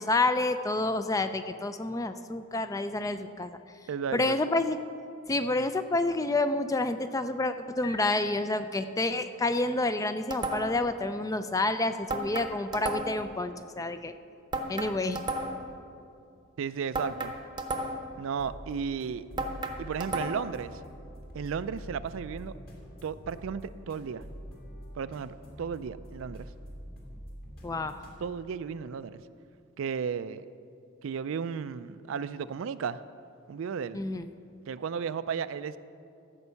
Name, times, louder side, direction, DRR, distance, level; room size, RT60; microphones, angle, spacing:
voice 1, 0.0-3.5 4.1-4.8 5.3-14.1 14.7-15.2 27.6-28.0 33.9-34.3, left 2 dB, 15° left, 10 dB, 0.3 m, -29 dB
voice 2, 3.9-4.4 16.6-17.3 18.2-19.2 19.8-20.8 21.3-22.6 23.0-24.2 24.9-26.5 28.2-29.2 29.8-30.5 31.0-33.0 33.5-34.0 34.7-35.8, right 6 dB, 60° right, 14 dB, 0.3 m, -34 dB
Piano, 7.8-9.3, left 4 dB, 70° left, 1.7 m, -46 dB
sound 1, 10.3-10.9 12.1-13.3 14.5-15.7 16.9-18.2 19.4-20.6, right 1 dB, 20° right, 0.7 m, -33 dB
sound 2, 18.4-28.2, equal, 45° left, 2.2 m, -46 dB
14.0 x 5.4 x 6.9 m, 2.5 s
head